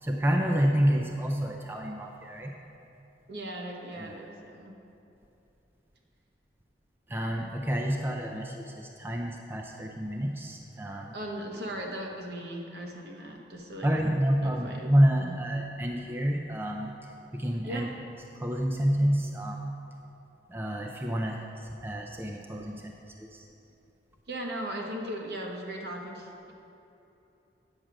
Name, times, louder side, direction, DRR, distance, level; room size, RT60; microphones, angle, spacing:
voice 1, 0.0-2.5 4.0-4.2 7.1-11.1 13.8-17.9 18.3-19.6 20.5-23.4, equal, 15° right, 2 dB, 0.4 m, -28 dB
voice 2, 3.3-4.7 11.1-13.9 14.4-14.9 15.2-15.3 17.6-17.9 24.3-26.5, right 1 dB, 65° right, 0 dB, 1.2 m, -38 dB
8.8 x 6.4 x 6.1 m, 2.9 s
head